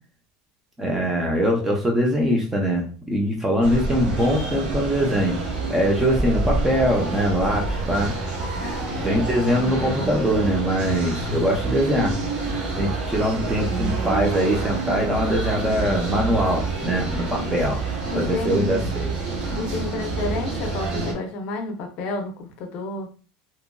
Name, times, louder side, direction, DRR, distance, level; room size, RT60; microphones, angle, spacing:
voice 1, 0.8-5.4 5.7-8.1 9.0-12.1 12.8-17.8 18.1-19.1, equal, 10° right, 0 dB, 0.5 m, -22 dB
sound 1, 3.6-21.1, right 3 dB, 40° right, 0.9 m, -27 dB
voice 2, 8.6-9.7 18.1-18.9 19.6-23.1, left 3 dB, 45° left, 4 dB, 0.5 m, -31 dB
2.9 x 2.5 x 2.2 m, 0.37 s
cardioid pair, 160°, 3 cm